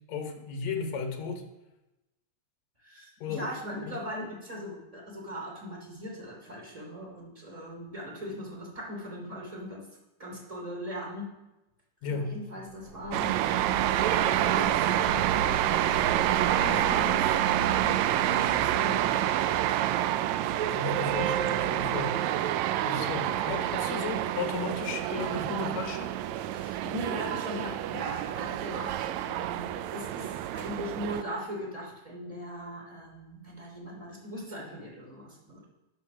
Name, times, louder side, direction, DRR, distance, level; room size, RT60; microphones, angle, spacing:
voice 1, 0.1-1.4 3.2-3.5 3.8-4.0 12.0-12.4 20.7-22.2 22.8-26.2, left 4 dB, 65° left, 5 dB, 2.4 m, -34 dB
voice 2, 2.8-9.8 10.2-11.3 12.0-15.7 16.1-19.8 26.5-35.6, equal, 10° right, -2 dB, 2.6 m, -39 dB
sound 1, 12.6-19.1, right 1 dB, 50° right, 1.2 m, -41 dB
sound 2, 13.1-31.2, right 12 dB, 80° right, 1.6 m, -28 dB
12.0 x 5.5 x 6.3 m, 0.97 s
omnidirectional pair, 3.7 m